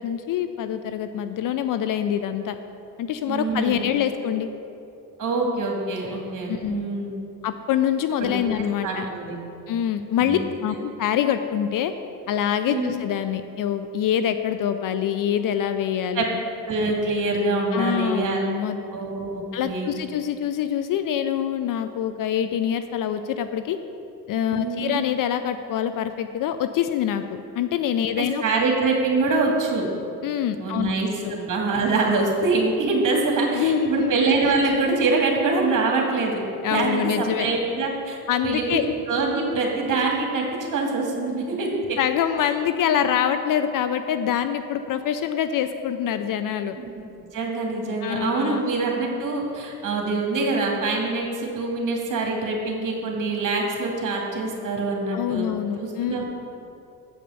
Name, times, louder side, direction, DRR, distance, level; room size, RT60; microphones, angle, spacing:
voice 1, 0.0-2.6 3.0-4.5 6.5-6.9 7.4-9.1 9.7-11.9 12.3-16.2 17.7-18.8 19.5-23.8 24.3-27.2 27.6-28.4 30.2-30.9 31.2-31.3 33.5-34.1 36.6-37.5 38.3-38.9 42.0-46.8 48.0-48.6 55.1-56.2, left 9 dB, 45° left, 9 dB, 0.5 m, -25 dB
voice 2, 3.3-3.8 5.2-7.2 8.2-8.5 8.8-9.4 10.2-10.4 12.7-12.9 16.1-16.3 16.7-18.4 18.9-19.9 24.5-25.0 28.2-29.9 30.6-36.4 36.7-38.8 39.1-42.0 42.4-42.5 46.8-47.0 47.3-55.5 55.8-56.2, right 3 dB, 45° right, 0 dB, 2.0 m, -24 dB
8.0 x 5.3 x 5.5 m, 2.6 s
hypercardioid pair, 65°, 45 cm